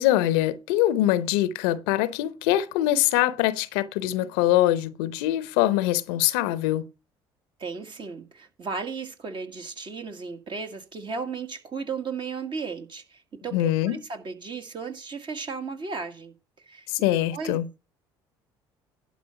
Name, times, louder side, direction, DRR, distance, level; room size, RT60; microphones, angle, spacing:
voice 1, 0.0-6.8 13.5-14.0 16.9-17.7, left 14 dB, 75° left, 0.7 m, -23 dB
voice 2, 7.6-16.3 16.6-17.6, right 5 dB, 40° right, 1.8 m, -35 dB
11.5 x 5.3 x 5.8 m
hypercardioid pair, 60°, 12 cm